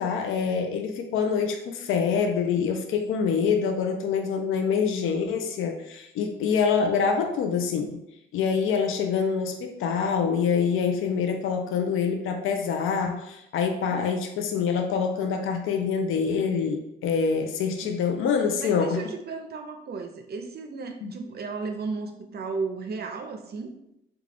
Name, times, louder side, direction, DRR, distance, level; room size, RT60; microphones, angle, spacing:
voice 1, 0.0-8.0 8.3-19.0 21.0-21.1, left 6 dB, 85° left, 5 dB, 0.4 m, -25 dB
voice 2, 18.6-23.7, right 4 dB, 50° right, 5 dB, 0.6 m, -34 dB
3.7 x 2.3 x 3.3 m, 0.81 s
cardioid pair, 75°, 21 cm